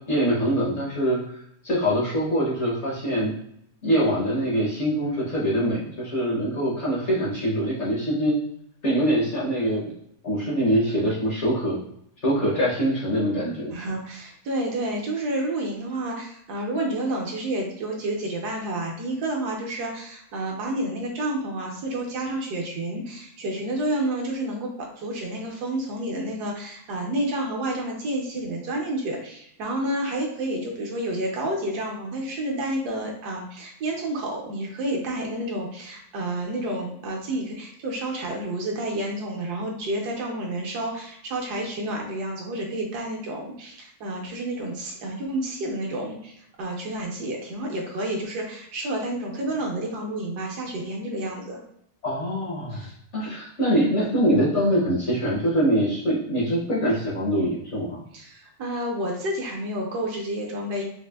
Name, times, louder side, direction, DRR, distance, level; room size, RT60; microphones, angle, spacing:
voice 1, 0.1-3.3 3.8-8.4 8.8-9.9 10.2-11.8 12.2-13.7 52.0-58.0, equal, 55° left, -5 dB, 0.8 m, -24 dB
voice 2, 13.7-51.6 58.1-60.8, right 1 dB, 70° right, 0 dB, 1.2 m, -30 dB
4.1 x 2.5 x 2.2 m, 0.71 s
omnidirectional pair, 1.9 m